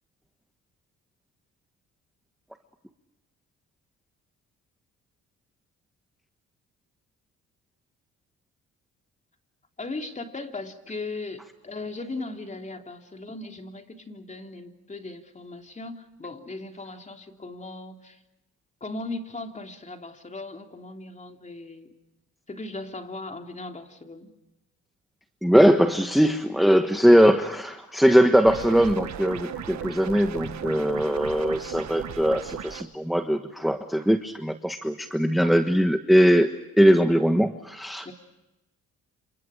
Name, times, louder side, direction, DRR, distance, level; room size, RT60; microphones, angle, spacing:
voice 1, 9.8-18.2 18.8-21.9 22.5-24.3 26.9-27.1 38.0-38.1, left 2 dB, 25° left, 4 dB, 3.3 m, -38 dB
voice 2, 25.4-36.5 36.8-38.1, equal, ahead, 7 dB, 1.3 m, -20 dB
sound 1, 28.4-32.8, right 10 dB, 65° right, 1.6 m, -36 dB
29.5 x 27.0 x 5.0 m, 0.96 s
cardioid pair, 90°, 30 cm